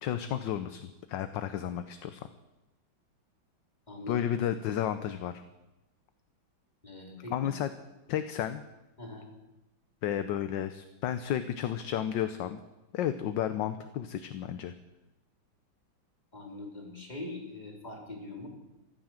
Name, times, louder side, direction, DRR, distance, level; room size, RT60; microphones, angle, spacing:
voice 1, 0.0-2.3 4.1-5.4 7.3-7.7 8.1-8.6 10.0-12.6 12.9-14.7, left 10 dB, 70° left, 10 dB, 1.4 m, -32 dB
voice 2, 3.9-4.2 6.8-7.5 9.0-9.3 16.3-18.5, left 2 dB, 20° left, 0 dB, 3.4 m, -42 dB
14.5 x 13.0 x 7.4 m, 1.0 s
omnidirectional pair, 2.1 m